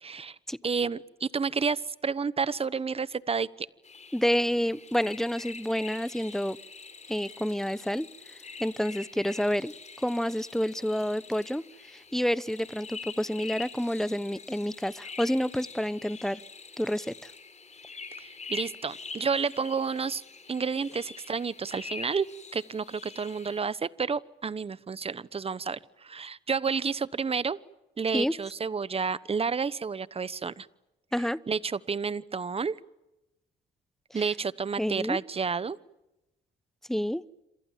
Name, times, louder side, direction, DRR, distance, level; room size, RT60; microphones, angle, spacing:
voice 1, 0.0-0.4 0.6-3.7 18.2-20.2 20.5-22.3 22.5-27.6 28.0-30.7 31.5-32.8 34.1-35.8, right 5 dB, 30° right, 18 dB, 1.1 m, -30 dB
sound 1, 3.8-23.6, left 5 dB, 35° left, 4.4 m, -45 dB
voice 2, 4.1-6.6 7.1-9.7 10.0-11.6 11.9-16.4 16.8-17.1 28.1-28.3 31.1-31.4 34.1-34.2 34.8-35.2 36.9-37.2, equal, ahead, 18 dB, 1.0 m, -29 dB
27.5 x 27.0 x 7.4 m, 0.94 s
cardioid pair, 90°, 20 cm